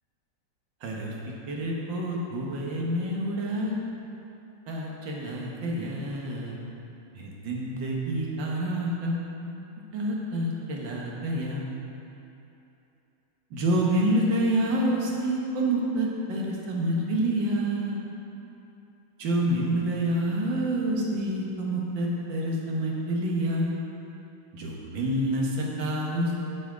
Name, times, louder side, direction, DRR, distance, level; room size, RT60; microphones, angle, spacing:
voice 1, 0.8-3.8 4.7-6.6 7.1-9.5 9.9-11.6 13.5-18.0 19.2-23.7 24.5-26.4, right 1 dB, 85° right, -3 dB, 1.9 m, -28 dB
7.1 x 7.0 x 5.0 m, 2.8 s
omnidirectional pair, 2.0 m